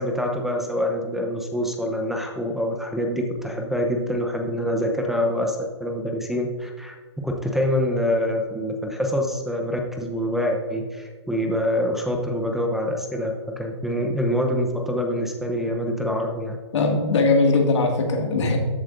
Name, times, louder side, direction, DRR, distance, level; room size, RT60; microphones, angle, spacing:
voice 1, 0.0-7.0 7.2-16.6, left 1 dB, ahead, 2 dB, 0.7 m, -25 dB
voice 2, 16.7-18.6, left 3 dB, 75° left, 1 dB, 2.1 m, -20 dB
13.5 x 7.5 x 2.6 m, 1.5 s
hypercardioid pair, 140°, 15 cm